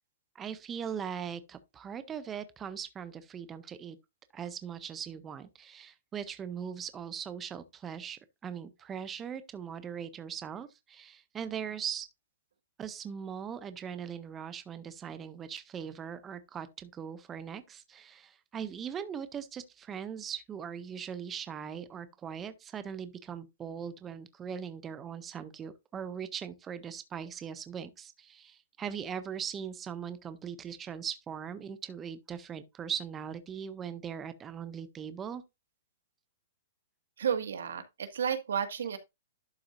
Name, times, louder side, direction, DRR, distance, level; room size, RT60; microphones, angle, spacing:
voice 1, 0.3-4.0 4.3-12.1 12.8-35.4, right 8 dB, 10° right, 0.5 m, -40 dB
voice 2, 37.2-39.0, right 7 dB, 85° right, 1.8 m, -32 dB
11.5 x 5.9 x 2.5 m
hypercardioid pair, 175°, 0 cm